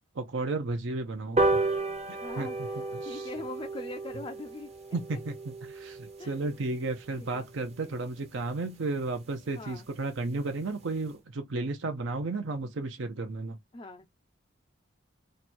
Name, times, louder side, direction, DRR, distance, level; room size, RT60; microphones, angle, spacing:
voice 1, 0.1-1.7 2.1-3.3 4.9-13.6, right 3 dB, 70° right, 0.6 m, -33 dB
sound 1, 1.4-8.1 8.5-8.6 8.9-9.1 9.3-9.4 9.7-9.8 10.1-10.4 10.8-10.9, right 2 dB, 30° right, 0.7 m, -33 dB
voice 2, 2.2-4.7 5.1-5.2 6.2-6.4 7.2-7.4 9.6-9.9 13.7-14.1, left 2 dB, 25° left, 0.3 m, -42 dB
3.0 x 2.2 x 4.2 m
head